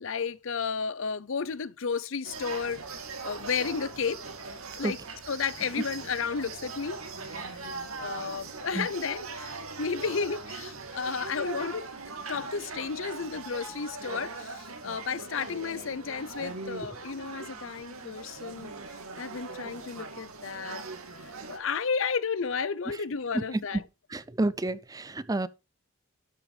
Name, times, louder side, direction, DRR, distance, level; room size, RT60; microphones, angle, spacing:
voice 1, 0.0-2.8 3.2-4.2 4.7-5.0 5.3-7.0 7.2-7.6 8.0-18.7 19.2-20.8 21.2-23.9, left 5 dB, 60° left, 0.6 m, -33 dB
sound 1, 2.2-21.6, right 3 dB, 75° right, 2.5 m, -40 dB
voice 2, 24.1-25.5, right 2 dB, 15° right, 0.5 m, -29 dB
12.0 x 6.1 x 4.9 m
head